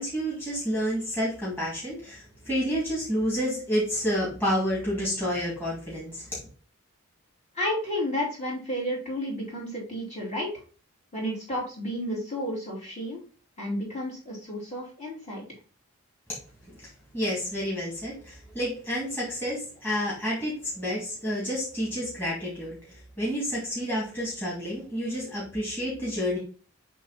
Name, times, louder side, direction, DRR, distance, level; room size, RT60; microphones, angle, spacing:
voice 1, 0.0-6.4 17.1-22.8 23.2-26.4, equal, 10° left, -7 dB, 2.5 m, -29 dB
voice 2, 7.5-10.5 11.1-13.2 13.6-15.4, equal, 35° left, -5 dB, 2.9 m, -31 dB
7.4 x 3.6 x 4.2 m, 0.39 s
head